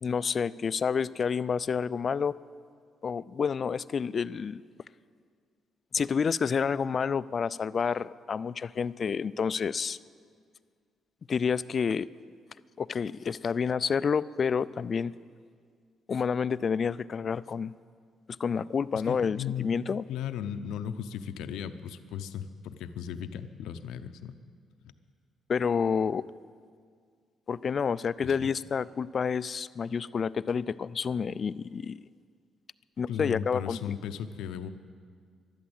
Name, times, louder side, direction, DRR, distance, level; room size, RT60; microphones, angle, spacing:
voice 1, 0.0-2.3 3.0-4.6 5.9-10.0 11.3-12.1 12.8-15.1 16.1-17.7 18.4-20.0 25.5-26.2 27.5-32.0 33.0-33.8, left 6 dB, 45° left, 18 dB, 0.3 m, -29 dB
voice 2, 18.9-19.7 20.1-24.4 28.2-28.5 33.1-34.7, left 9 dB, 90° left, 10 dB, 0.6 m, -36 dB
12.5 x 11.5 x 8.0 m, 2.1 s
cardioid pair, 90°, 0 cm